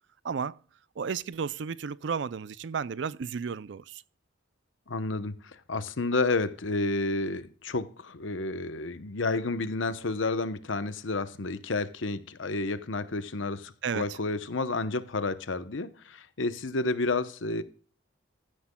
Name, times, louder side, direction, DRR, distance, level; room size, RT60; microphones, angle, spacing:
voice 1, 0.2-0.6 1.0-4.0 13.8-14.2, right 6 dB, 65° right, 0.4 m, -33 dB
voice 2, 4.9-17.6, left 3 dB, 80° left, 0.9 m, -30 dB
15.5 x 10.0 x 2.3 m
head